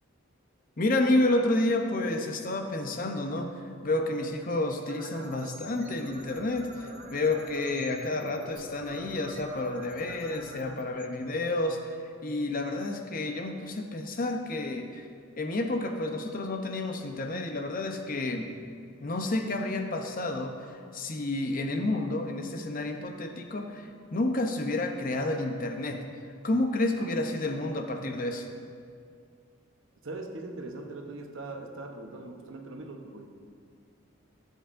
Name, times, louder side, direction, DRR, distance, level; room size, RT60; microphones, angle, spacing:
voice 1, 0.8-3.5 3.8-15.1 15.4-18.5 19.0-26.0 26.4-28.5, left 2 dB, 45° left, 4 dB, 0.7 m, -30 dB
sound 1, 4.8-11.8, right 1 dB, 40° right, 1.0 m, -47 dB
voice 2, 30.0-33.3, right 2 dB, 70° right, 3 dB, 0.9 m, -41 dB
15.0 x 8.0 x 2.6 m, 2.2 s
head